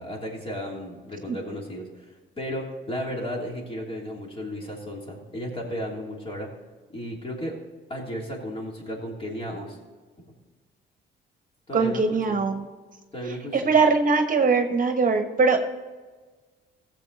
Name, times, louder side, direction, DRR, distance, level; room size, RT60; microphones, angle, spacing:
voice 1, 0.0-1.9 2.4-6.5 6.9-7.6 7.9-9.8 11.7-12.0 13.1-13.7, equal, 30° left, -1 dB, 3.2 m, -34 dB
voice 2, 11.7-12.7 13.5-15.6, right 4 dB, 45° right, 6 dB, 1.2 m, -21 dB
15.5 x 7.4 x 4.1 m, 1.3 s
cardioid pair, 90°, 20 cm